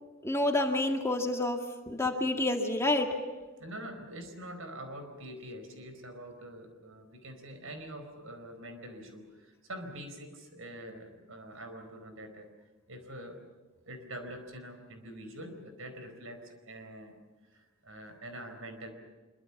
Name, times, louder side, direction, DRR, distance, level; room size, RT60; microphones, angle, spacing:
voice 1, 0.2-3.1, left 2 dB, 15° left, 3 dB, 2.0 m, -29 dB
voice 2, 3.6-12.5 12.9-13.4 13.8-17.2 17.8-18.9, right 1 dB, 75° right, 7 dB, 4.6 m, -45 dB
25.0 x 23.5 x 7.2 m, 1.3 s
head